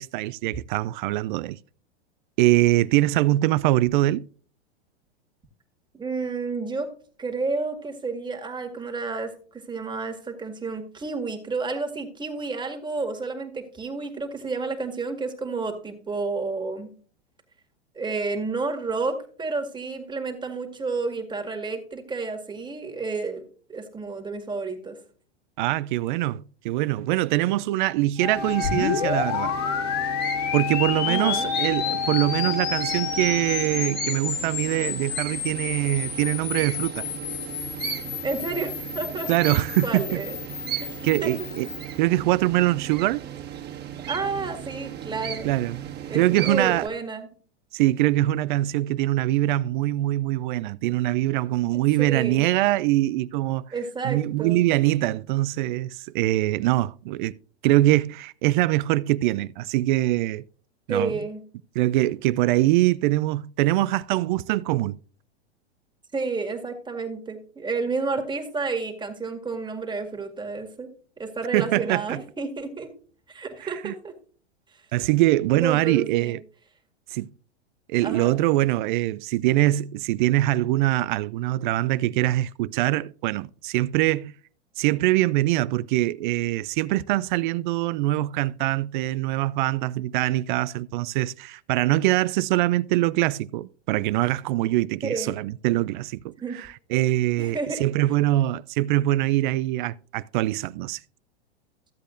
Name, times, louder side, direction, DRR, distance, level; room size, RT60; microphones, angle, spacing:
voice 1, 0.0-1.6 2.4-4.3 25.6-29.5 30.5-37.1 39.3-40.2 41.0-41.7 42.0-43.2 45.4-45.8 46.1-46.9 47.7-53.7 54.0-57.3 57.6-60.4 60.9-61.1 61.8-65.0 71.5-72.2 73.6-73.9 74.9-76.4 77.1-77.3 77.9-84.3 84.8-101.0, right 16 dB, 50° right, 0.4 m, -23 dB
voice 2, 5.9-6.9 7.2-16.9 18.0-23.4 23.7-25.0 31.1-31.5 38.2-39.3 39.8-40.4 40.8-41.3 44.1-45.5 46.1-47.3 52.0-52.5 53.7-54.6 60.9-61.4 66.1-70.9 71.2-72.9 73.3-74.1 75.5-76.4 78.0-78.3 95.1-95.3 96.4-96.6 97.4-97.8, right 4 dB, 15° right, 2.0 m, -30 dB
Wind instrument woodwind instrument, 28.2-34.1, left 9 dB, 90° left, 2.4 m, -31 dB
sound 1, 28.3-46.9, right 10 dB, 30° right, 1.8 m, -36 dB
sound 2, 28.6-42.0, left 8 dB, 45° left, 2.3 m, -31 dB
14.5 x 8.1 x 2.5 m
hypercardioid pair, 105°, 33 cm